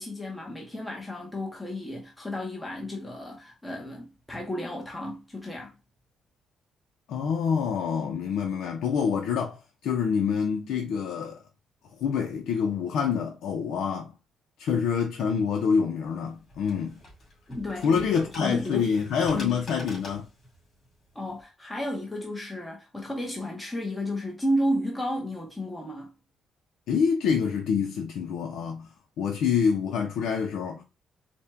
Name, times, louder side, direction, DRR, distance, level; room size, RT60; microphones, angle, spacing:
voice 1, 0.0-5.8 17.5-18.9 19.3-19.6 21.1-26.1, equal, 10° left, 0.7 m, -32 dB
voice 2, 7.1-9.6 9.8-11.4 12.0-14.1 14.6-17.0 17.8-20.3 26.9-28.9 29.2-30.8, left 6 dB, 75° left, 0.6 m, -26 dB
sound 1, 16.0-21.4, left 1 dB, 30° left, 2.2 m, -46 dB
4.3 x 2.2 x 3.4 m
cardioid pair, 145°, 0 cm